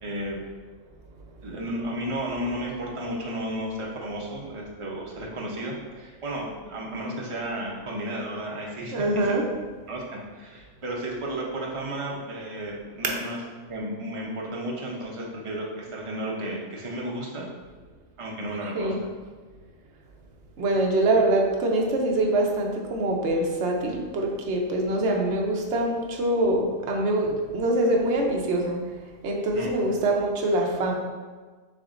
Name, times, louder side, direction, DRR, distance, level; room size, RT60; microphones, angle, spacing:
voice 1, 0.0-0.4 1.4-9.3 9.9-13.4 13.7-17.5 18.2-19.0 29.5-29.7, right 1 dB, 30° right, -2 dB, 0.6 m, -33 dB
voice 2, 8.9-9.5 13.0-13.1 18.7-19.0 20.6-28.8 29.2-30.9, right 1 dB, 65° right, 0 dB, 0.9 m, -24 dB
7.0 x 2.9 x 2.5 m, 1.4 s
omnidirectional pair, 1.3 m